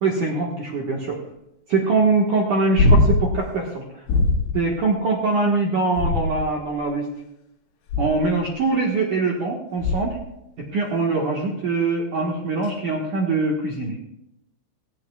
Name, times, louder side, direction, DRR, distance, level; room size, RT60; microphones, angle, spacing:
voice 1, 0.0-1.2 1.7-3.8 4.5-7.1 8.0-10.2 10.6-14.0, right 3 dB, 75° right, -1 dB, 1.8 m, -23 dB
sound 1, 2.8-3.4 4.1-4.6 5.9-6.7 7.9-8.4 9.8-10.3 12.6-12.7, left 2 dB, 65° left, 4.2 m, -20 dB
18.0 x 16.0 x 2.3 m, 0.82 s
omnidirectional pair, 6.0 m